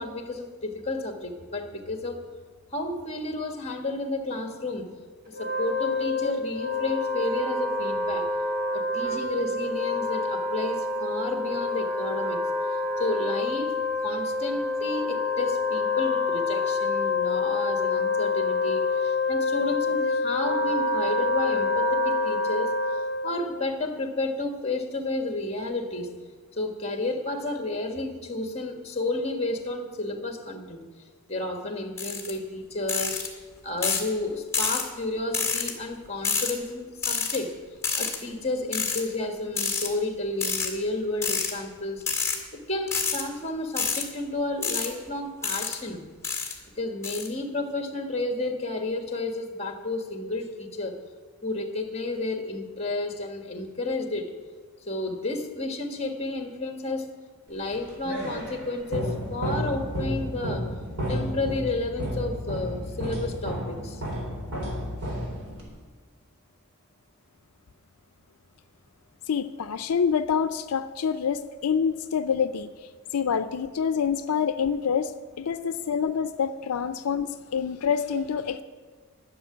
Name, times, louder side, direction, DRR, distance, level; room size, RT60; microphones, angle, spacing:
voice 1, 0.0-2.2 2.7-4.9 5.3-8.3 8.7-12.4 12.7-26.2 26.5-37.5 38.0-42.4 42.7-46.0 46.7-51.0 51.4-54.3 54.9-57.1 57.5-60.7 61.1-64.0, left 2 dB, 30° left, 4 dB, 1.5 m, -31 dB
Wind instrument woodwind instrument, 5.3-23.4, left 3 dB, 40° right, 1.8 m, -27 dB
sound 1, 32.0-32.3 32.9-33.3 33.8-34.1 34.5-34.8 35.3-35.7 36.2-36.5 37.0-37.4 37.8-38.2 38.7-39.0 39.6-39.9 40.4-40.7 41.2-41.5 42.0-42.4 42.9-43.2 43.8-44.0 44.6-44.9 45.4-45.8 46.2-46.5 47.0-47.3, left 5 dB, 10° left, 1.9 m, -27 dB
sound 2, 57.6-65.8, equal, 75° right, 4.0 m, -32 dB
voice 2, 69.3-72.7 73.1-75.1 75.4-78.6, left 7 dB, 85° left, 11 dB, 0.5 m, -26 dB
12.5 x 6.8 x 9.7 m, 1.5 s
head